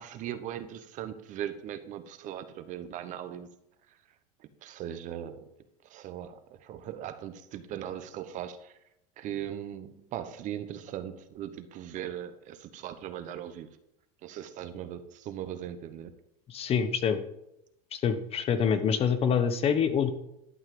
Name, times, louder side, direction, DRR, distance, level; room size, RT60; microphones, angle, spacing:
voice 1, 0.0-3.5 4.4-5.4 5.9-8.7 9.2-13.7 14.2-16.1, right 10 dB, 40° right, 1.1 m, -39 dB
voice 2, 16.5-17.2 17.9-20.1, left 7 dB, 30° left, 1.1 m, -26 dB
12.0 x 5.7 x 7.7 m
supercardioid pair, 140°, 19 cm